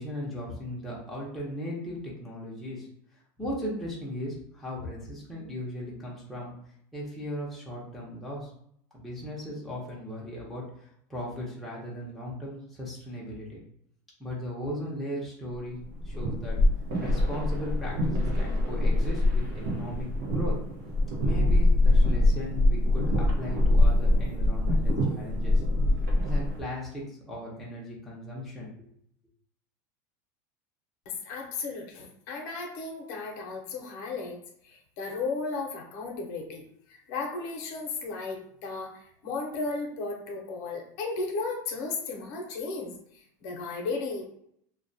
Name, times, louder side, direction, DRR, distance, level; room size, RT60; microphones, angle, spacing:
voice 1, 0.0-2.9 3.4-6.5 6.9-8.5 8.9-10.7 11.1-13.6 14.2-15.8 16.0-16.6 17.0-20.1 20.3-20.6 21.2-25.6 26.2-28.9, equal, ahead, -6 dB, 0.6 m, -37 dB
sound 1, 15.8-26.6, left 1 dB, 85° right, 0.8 m, -24 dB
voice 2, 31.1-44.3, left 3 dB, 55° left, 1 dB, 0.7 m, -35 dB
2.3 x 2.1 x 2.6 m, 0.69 s
supercardioid pair, 155°, 10 cm